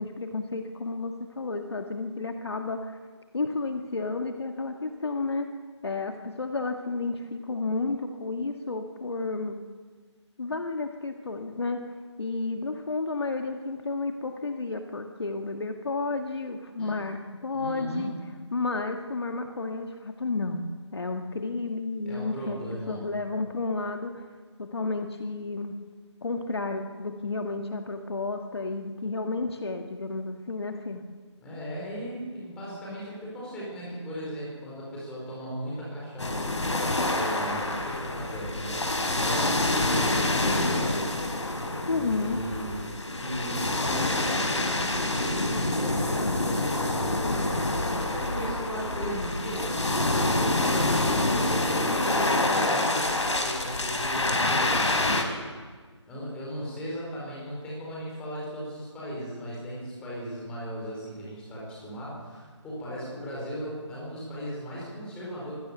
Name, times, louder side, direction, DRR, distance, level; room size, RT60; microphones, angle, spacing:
voice 1, 0.0-3.0 3.3-5.5 5.8-9.6 10.4-11.8 12.2-18.1 18.5-24.3 24.6-25.8 26.2-31.0 41.9-42.4, left 3 dB, 60° left, 5 dB, 1.7 m, -31 dB
voice 2, 17.5-18.1 22.0-23.0 31.4-41.1 41.9-55.3 56.1-65.5, equal, 5° left, -6 dB, 4.8 m, -37 dB
sound 1, 36.2-55.2, left 2 dB, 75° left, 4.3 m, -27 dB
24.5 x 16.5 x 7.0 m, 1.5 s
figure-of-eight pair, 165°, 15 cm